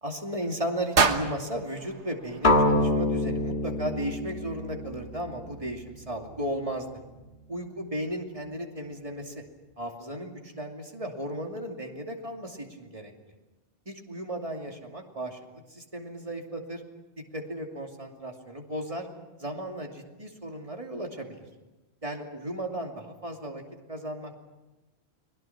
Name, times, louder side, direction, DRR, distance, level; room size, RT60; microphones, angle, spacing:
voice 1, 0.0-6.9 7.5-9.4 9.8-13.1 13.9-15.4 15.7-16.8 17.3-19.1 19.4-21.4 22.0-23.6 23.9-24.4, right 1 dB, 30° right, 1 dB, 2.7 m, -35 dB
sound 1, 0.9-3.1, right 5 dB, 80° right, 1.7 m, -28 dB
sound 2, 2.4-6.4, left 2 dB, 65° left, 2.0 m, -26 dB
30.0 x 21.5 x 6.0 m, 1.1 s
omnidirectional pair, 1.1 m